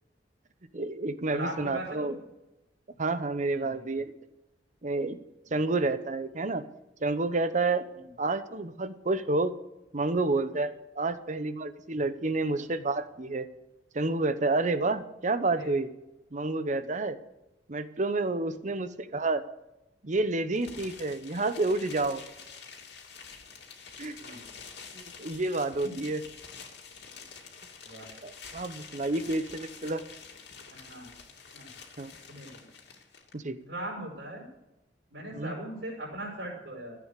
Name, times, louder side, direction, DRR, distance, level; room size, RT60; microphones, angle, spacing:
voice 1, 0.7-2.2 3.0-4.1 4.8-5.2 5.5-6.6 7.0-7.8 8.2-9.5 9.9-13.5 13.9-15.9 16.3-17.2 17.7-19.4 20.0-22.2 24.0-24.4 24.9-26.2 28.2-30.0 32.0-32.1 33.3-33.6 35.3-35.5, right 2 dB, 45° right, 12 dB, 0.9 m, -29 dB
voice 2, 1.3-2.1 3.5-4.0 5.5-5.6 7.9-8.1 12.4-12.7 15.6-15.7 24.2-24.4 25.8-25.9 27.8-28.1 30.7-31.1 31.5-31.7 32.3-32.7 33.6-34.5 35.1-37.0, right 1 dB, 75° right, -8 dB, 5.4 m, -40 dB
sound 1, 20.6-33.3, left 5 dB, 65° left, 2.6 m, -48 dB
14.5 x 8.6 x 6.7 m, 0.95 s
head